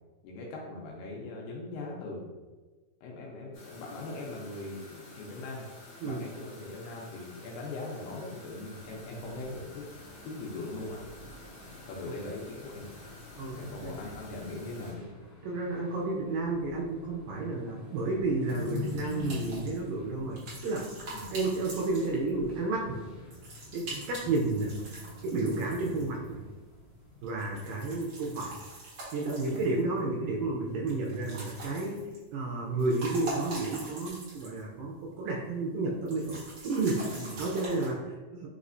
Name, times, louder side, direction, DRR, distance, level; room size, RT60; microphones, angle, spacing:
voice 1, 0.2-2.3 3.0-5.7 6.0-9.9 10.2-11.0 11.9-12.9 13.5-15.2 15.8-16.8 21.1-21.3 24.2-24.3 25.9-26.1 29.4-29.6 37.2-37.4, left 2 dB, 80° left, -2 dB, 2.2 m, -41 dB
sound 1, 3.5-14.9, left 2 dB, 65° left, 1.8 m, -51 dB
sound 2, 8.7-27.3, left 4 dB, 45° left, 1.6 m, -46 dB
voice 2, 13.4-14.0 15.4-20.8 21.3-23.0 23.7-24.7 25.2-26.4 27.2-28.6 29.1-32.0 32.3-37.0 37.4-38.5, right 3 dB, 80° right, -2 dB, 2.1 m, -31 dB
sound 3, 18.5-22.5 23.3-26.3 27.2-30.0 30.9-32.3 32.6-34.7 35.0-35.1 36.1-37.9, right 2 dB, 55° right, 1.7 m, -44 dB
5.5 x 3.1 x 2.5 m, 1.3 s
omnidirectional pair, 4.2 m